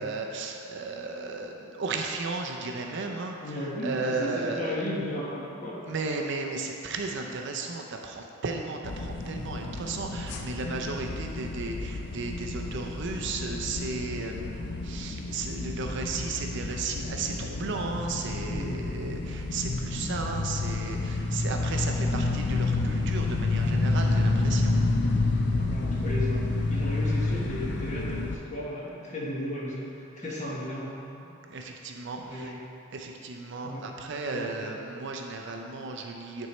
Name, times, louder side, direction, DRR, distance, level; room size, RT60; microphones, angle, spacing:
voice 1, 0.0-4.8 5.9-24.7 30.2-30.4 31.5-32.5 32.9-36.5, right 3 dB, 55° right, 2 dB, 0.5 m, -34 dB
voice 2, 3.4-5.8 18.5-19.0 25.7-30.9 31.2-31.3 31.7-31.9 32.3-32.6 33.6-33.8 34.3-34.5, left 1 dB, 35° left, -5 dB, 1.2 m, -35 dB
sound 1, 8.8-28.4, left 2 dB, 50° left, 0.5 m, -29 dB
9.4 x 4.5 x 3.1 m, 2.9 s
head